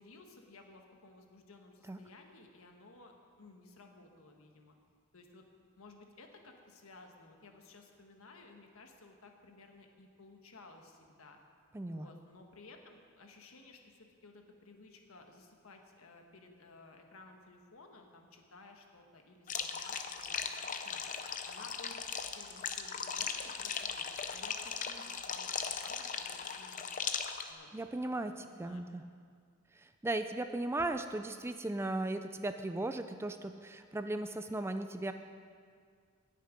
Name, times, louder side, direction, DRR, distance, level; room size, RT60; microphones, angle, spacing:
voice 1, 0.0-4.8 5.1-5.5 5.8-11.4 11.8-21.0 21.4-24.0 24.3-26.9 27.5-28.8, left 3 dB, 75° left, 3 dB, 1.3 m, -56 dB
voice 2, 11.7-12.1 27.7-28.3 28.6-29.0 29.7-35.1, right 2 dB, 10° right, 8 dB, 0.3 m, -37 dB
sound 1, 19.5-27.5, left 7 dB, 40° left, 0.6 m, -38 dB
18.0 x 6.7 x 5.1 m, 2.1 s
head